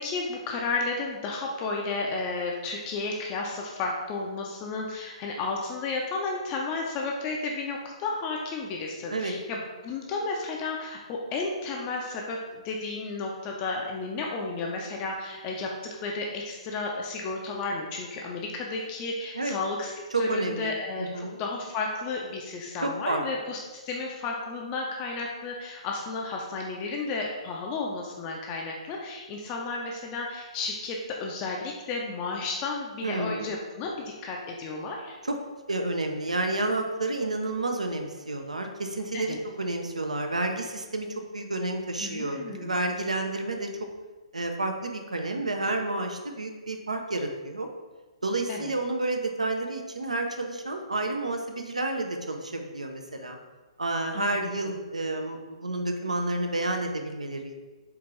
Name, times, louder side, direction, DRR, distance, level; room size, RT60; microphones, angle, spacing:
voice 1, 0.0-12.4 12.6-35.2 39.1-39.4 42.0-42.7 48.5-48.7 54.1-54.5, left 3 dB, 30° left, -1 dB, 0.4 m, -33 dB
voice 2, 20.1-20.7 21.0-21.4 22.8-23.2 33.0-33.5 35.2-35.4 35.7-43.7 44.3-47.7 48.2-53.4 53.8-57.5, right 2 dB, 90° right, 4 dB, 0.5 m, -30 dB
4.5 x 2.4 x 3.1 m, 1.3 s
figure-of-eight pair, 125°, 4 cm